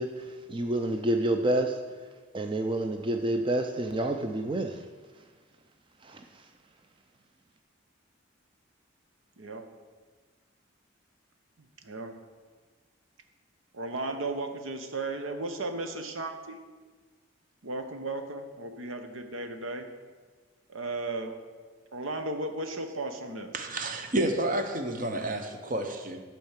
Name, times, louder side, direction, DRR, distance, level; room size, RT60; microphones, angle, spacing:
voice 1, 0.0-1.8 2.3-4.8 6.0-6.2, right 1 dB, 25° right, 4 dB, 0.5 m, -28 dB
voice 2, 9.4-9.7 11.8-12.1 13.7-16.6 17.6-19.9 20.7-21.3 21.9-23.6, right 2 dB, 90° right, 6 dB, 1.0 m, -35 dB
voice 3, 23.5-26.2, right 1 dB, 40° right, 6 dB, 0.9 m, -30 dB
12.0 x 4.5 x 7.3 m, 1.4 s
head